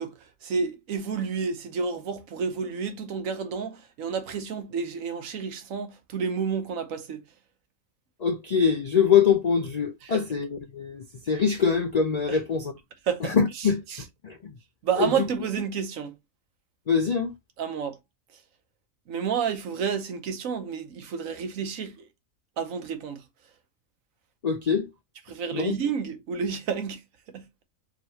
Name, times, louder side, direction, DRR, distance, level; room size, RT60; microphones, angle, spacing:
voice 1, 0.0-7.2 10.0-10.2 12.3-12.4 13.1-14.0 14.8-16.1 17.6-18.0 19.1-22.1 22.6-23.2 25.3-27.0 27.3-27.5, right 6 dB, 75° right, 1.2 m, -30 dB
voice 2, 8.2-12.7 13.2-13.8 14.2-14.5 15.0-15.1 16.9-17.3 24.4-24.9 25.5-25.7, left 6 dB, 80° left, 0.3 m, -24 dB
4.9 x 3.1 x 2.8 m
omnidirectional pair, 1.4 m